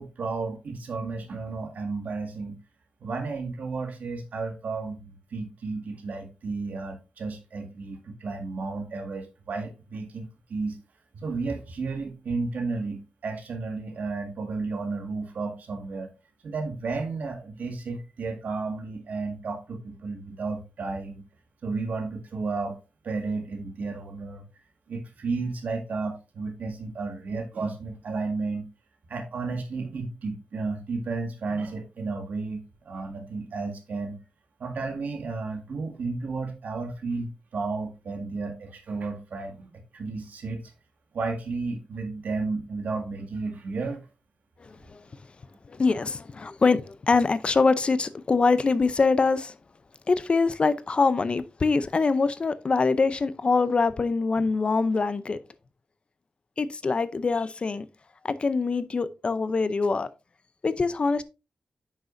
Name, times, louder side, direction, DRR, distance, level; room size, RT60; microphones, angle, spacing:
voice 1, 0.0-2.6 3.0-10.8 11.1-16.1 16.4-21.2 21.6-22.8 23.0-24.5 24.9-28.7 29.1-34.2 34.6-40.6 41.1-44.0, right 3 dB, 75° right, 1.9 m, -33 dB
voice 2, 44.6-45.0 45.7-49.5 50.1-55.4 56.6-57.9 58.2-60.1 60.6-61.2, left 4 dB, 40° left, 0.6 m, -24 dB
9.3 x 6.4 x 2.6 m
wide cardioid pair, 105°, 3 cm